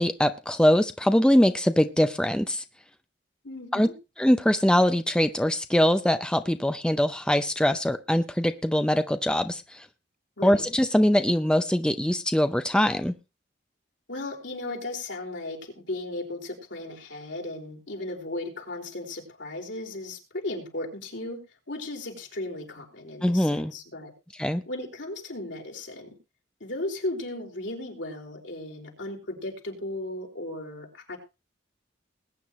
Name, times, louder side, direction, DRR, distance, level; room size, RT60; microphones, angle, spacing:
voice 1, 0.0-2.6 3.7-3.9 4.2-9.9 10.4-13.1 23.2-23.7 24.4-24.6, equal, 5° left, 9 dB, 0.5 m, -22 dB
voice 2, 3.4-3.9 10.4-10.7 14.1-21.4 21.7-24.1 24.7-26.1 26.6-31.2, left 2 dB, 70° left, 1 dB, 4.2 m, -36 dB
21.0 x 9.2 x 3.0 m, 0.29 s
head